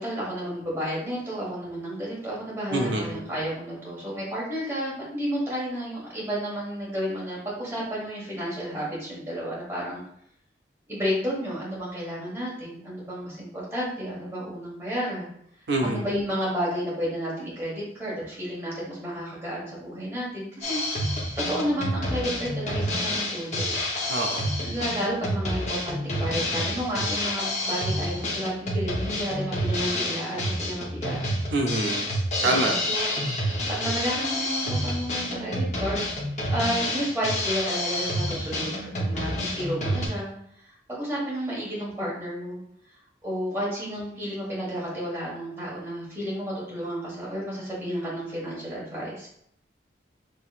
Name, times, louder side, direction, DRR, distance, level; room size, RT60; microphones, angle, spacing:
voice 1, 0.0-10.0 10.9-15.3 15.8-20.8 21.3-23.8 24.6-31.2 32.4-33.2 33.7-36.1 36.5-40.3 40.9-42.6 43.2-49.3, equal, 15° right, -7 dB, 1.5 m, -31 dB
voice 2, 2.7-3.2 15.7-16.0 24.1-24.5 31.5-32.1 32.4-32.8, right 2 dB, 75° right, 1 dB, 0.6 m, -25 dB
Drum kit, 20.6-40.1, left 1 dB, 40° left, 0.8 m, -29 dB
5.4 x 3.2 x 2.4 m, 0.70 s
head